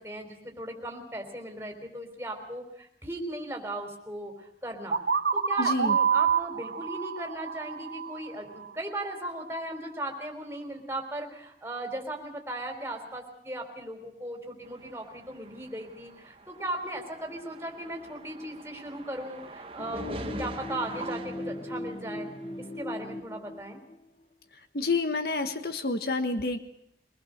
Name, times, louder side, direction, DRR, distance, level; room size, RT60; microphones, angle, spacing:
voice 1, 0.0-5.0 5.3-22.3 22.6-23.8, right 1 dB, 15° right, 4 dB, 3.9 m, -37 dB
sound 1, 4.9-8.7, right 6 dB, 65° right, 0.9 m, -27 dB
voice 2, 5.6-6.0 24.7-26.6, left 3 dB, 55° left, 8 dB, 1.4 m, -28 dB
sound 2, 14.7-22.3, right 1 dB, 30° right, 1.3 m, -43 dB
sound 3, 19.8-24.2, left 1 dB, 30° left, 1.3 m, -39 dB
24.0 x 20.0 x 6.6 m, 0.74 s
head